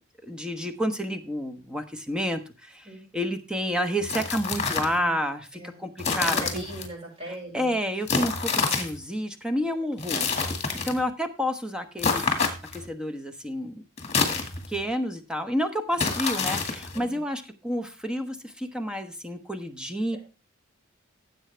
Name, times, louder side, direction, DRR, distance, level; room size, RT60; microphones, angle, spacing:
voice 1, 0.2-6.6 7.3-10.4 10.8-12.3 12.7-13.8 14.2-14.4 14.7-20.2, equal, 5° right, 7 dB, 1.0 m, -30 dB
sound 1, 4.0-5.0 6.0-6.9 8.1-9.0 10.0-11.0 12.0-12.9 14.0-14.8 16.0-17.0, left 4 dB, 30° left, 2.0 m, -27 dB
voice 2, 6.2-7.7 9.6-9.8 10.7-11.0 16.9-17.2 20.1-20.2, right 1 dB, 25° right, -2 dB, 5.9 m, -40 dB
15.5 x 7.9 x 3.3 m, 0.31 s
head